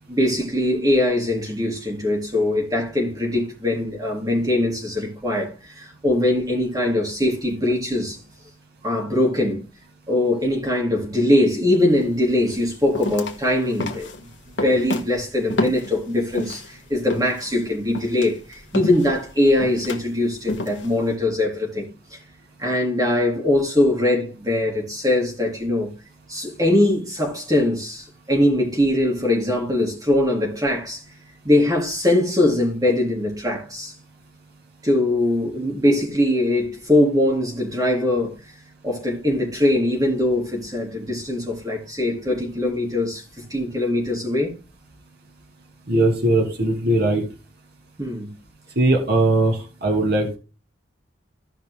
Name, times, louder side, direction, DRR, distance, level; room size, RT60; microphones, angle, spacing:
voice 1, 0.1-8.2 8.8-9.6 10.1-14.1 14.6-22.2 22.6-25.9 26.3-31.0 31.4-33.9 34.8-38.4 38.8-44.5 48.0-48.3, left 1 dB, 20° right, 3.8 m, -21 dB
sound 1, 11.9-12.1 12.5-16.7 17.1-21.1, left 2 dB, 70° left, 1.6 m, -30 dB
voice 2, 45.9-47.2 48.8-50.4, right 2 dB, 55° right, 2.3 m, -19 dB
16.5 x 5.8 x 2.2 m
head